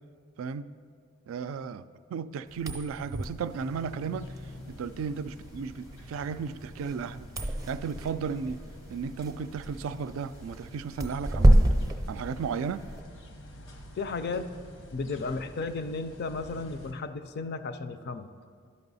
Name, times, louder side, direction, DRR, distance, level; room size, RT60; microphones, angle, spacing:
voice 1, 0.4-0.7 1.3-4.3 4.7-7.3 7.7-8.6 8.9-11.7 12.1-12.9, right 6 dB, 85° right, 14 dB, 0.3 m, -34 dB
sound 1, 2.5-13.0, right 1 dB, 20° right, 0.5 m, -29 dB
sound 2, 3.5-16.9, left 1 dB, 85° left, 0.9 m, -47 dB
voice 2, 14.0-14.5 14.9-18.3, left 3 dB, 55° left, 11 dB, 0.4 m, -34 dB
12.0 x 5.4 x 4.0 m, 2.1 s
head